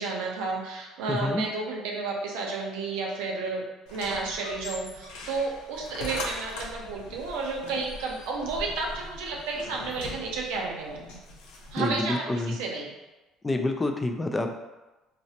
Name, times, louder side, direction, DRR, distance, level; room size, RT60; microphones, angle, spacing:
voice 1, 0.0-3.6 3.9-11.2 11.7-12.9, right 3 dB, 90° right, -1 dB, 0.6 m, -32 dB
voice 2, 1.1-1.4 11.8-12.6 13.4-14.5, left 2 dB, 20° left, 5 dB, 0.3 m, -27 dB
sound 1, 3.9-12.0, left 2 dB, 90° left, 0.5 m, -41 dB
3.9 x 2.0 x 2.8 m, 1.1 s
cardioid pair, 105°, 0 cm